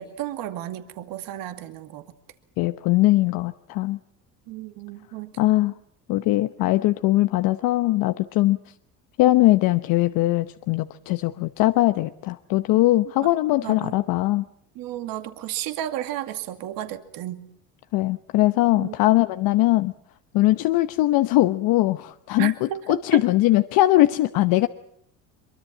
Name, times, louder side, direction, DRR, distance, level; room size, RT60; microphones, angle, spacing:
voice 1, 0.0-2.1 4.5-5.3 13.6-13.9 14.8-17.5 18.8-18.9 22.4-23.0, right 12 dB, 70° right, 8 dB, 2.3 m, -33 dB
voice 2, 2.6-4.0 5.4-5.7 6.1-8.6 9.2-14.4 17.9-19.9 20.3-24.7, left 17 dB, 70° left, 10 dB, 1.0 m, -21 dB
23.5 x 23.0 x 7.5 m, 0.70 s
supercardioid pair, 90°, 36 cm